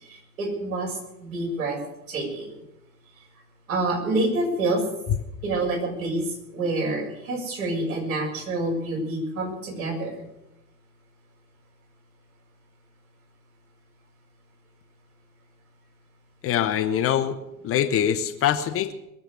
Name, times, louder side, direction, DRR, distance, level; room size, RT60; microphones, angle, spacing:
voice 1, 0.0-1.8 2.1-2.6 3.7-4.8 5.4-10.2, right 2 dB, 65° right, -2 dB, 6.7 m, -27 dB
voice 2, 16.4-17.4 17.6-18.9, left 10 dB, 30° left, 8 dB, 1.0 m, -23 dB
22.0 x 7.4 x 8.3 m, 0.88 s
figure-of-eight pair, 80°, 44 cm